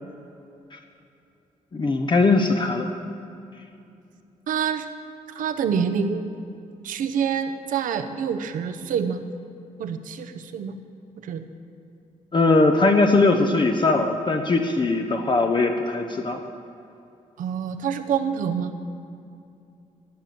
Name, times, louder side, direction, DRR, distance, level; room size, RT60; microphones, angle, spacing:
voice 1, 1.7-2.9 12.3-16.4, left 3 dB, 35° left, 4 dB, 0.9 m, -20 dB
voice 2, 4.5-4.9 5.3-6.3 6.8-9.2 9.8-10.8 11.2-11.5 17.4-18.7, right 7 dB, 85° right, 9 dB, 0.9 m, -26 dB
16.0 x 6.1 x 9.4 m, 2.6 s
cardioid pair, 85°, 13 cm